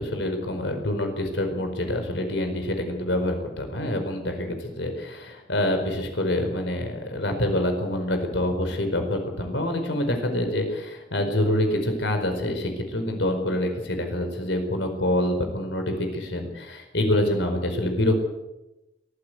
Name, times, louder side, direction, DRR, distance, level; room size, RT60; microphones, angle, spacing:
voice 1, 0.0-18.2, left 1 dB, 90° left, 5 dB, 4.9 m, -26 dB
22.5 x 15.5 x 8.0 m, 0.98 s
head